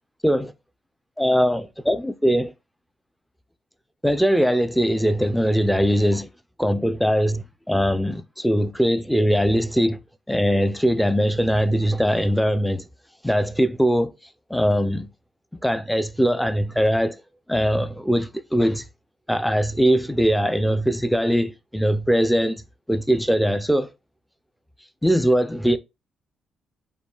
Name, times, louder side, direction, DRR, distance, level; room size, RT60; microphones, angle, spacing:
voice 1, 1.2-2.5 4.0-6.3 6.6-10.0 10.3-12.8 13.2-14.1 14.5-15.1 15.6-17.2 17.5-18.8 19.3-22.6 22.9-23.9 25.0-25.8, equal, 5° left, 0.4 m, -21 dB
8.2 x 2.8 x 2.3 m
cardioid pair, 90°, 0 cm